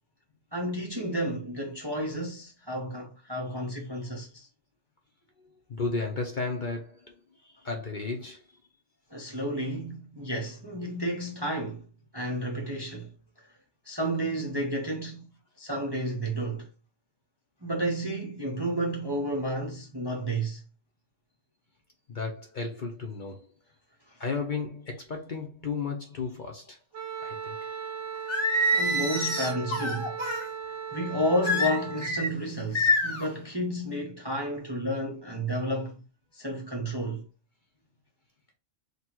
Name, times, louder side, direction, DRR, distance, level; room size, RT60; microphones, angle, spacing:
voice 1, 0.5-4.5 9.1-11.9 12.1-13.1 13.4-13.5 13.9-15.3 15.6-16.7 17.6-20.6 28.7-30.1 30.9-36.0 36.3-37.3, right 1 dB, 25° right, 0.6 m, -31 dB
voice 2, 5.7-7.2 7.4-8.4 22.1-23.5 24.2-26.8 27.2-28.0, left 4 dB, 45° left, 0.7 m, -34 dB
Wind instrument woodwind instrument, 26.9-32.1, right 7 dB, 60° right, 0.8 m, -37 dB
Singing, 28.3-30.5 31.4-32.3 32.7-33.3, left 1 dB, 20° left, 1.5 m, -26 dB
4.0 x 2.3 x 4.4 m
omnidirectional pair, 1.3 m